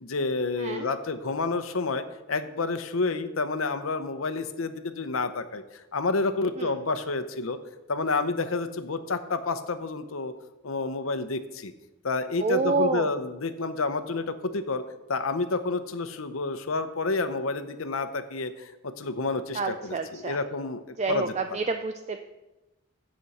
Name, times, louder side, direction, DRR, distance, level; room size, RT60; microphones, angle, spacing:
voice 1, 0.0-7.6 7.9-10.3 10.6-11.7 12.0-14.8 15.1-20.8 21.1-21.7, left 3 dB, 80° left, 10 dB, 0.8 m, -29 dB
voice 2, 0.6-0.9 6.6-6.7 12.4-13.1 19.5-20.4 21.0-22.2, right 3 dB, 35° right, 7 dB, 0.4 m, -28 dB
15.5 x 6.3 x 4.2 m, 1.0 s
head